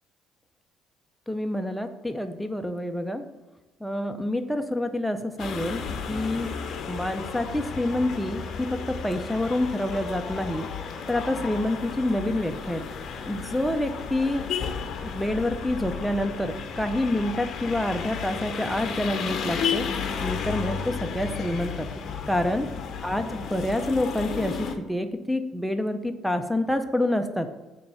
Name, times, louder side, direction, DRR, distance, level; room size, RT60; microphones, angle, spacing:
voice 1, 1.3-3.2 3.8-5.8 6.1-6.5 6.9-10.7 11.1-12.9 13.3-14.5 15.0-19.8 20.2-21.9 22.3-22.7 23.0-27.5, left 1 dB, ahead, 6 dB, 0.4 m, -27 dB
sound 1, 5.4-24.8, left 6 dB, 50° left, 0.6 m, -33 dB
7.1 x 3.2 x 5.3 m, 1.1 s
cardioid pair, 140°, 0 cm